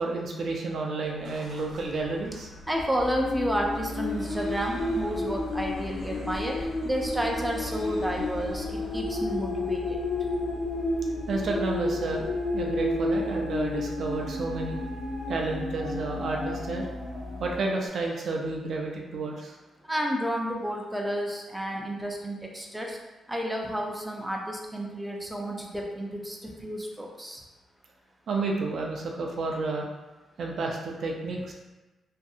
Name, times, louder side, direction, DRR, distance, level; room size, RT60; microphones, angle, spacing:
voice 1, 0.0-2.5 11.3-12.3 12.5-14.8 15.3-16.9 17.4-19.6 28.3-29.9 30.4-31.5, right 3 dB, 65° right, 0 dB, 0.4 m, -31 dB
Vehicle, 1.0-16.5, right 1 dB, 85° left, 0.9 m, -46 dB
voice 2, 2.7-9.8 19.8-23.0 23.3-27.4, equal, 10° right, 0 dB, 0.5 m, -31 dB
sound 1, 3.0-17.6, left 2 dB, 70° left, 0.4 m, -32 dB
sound 2, 6.8-17.9, right 1 dB, 35° right, 0.8 m, -46 dB
2.6 x 2.5 x 2.3 m, 1.1 s
cardioid pair, 65°, 0 cm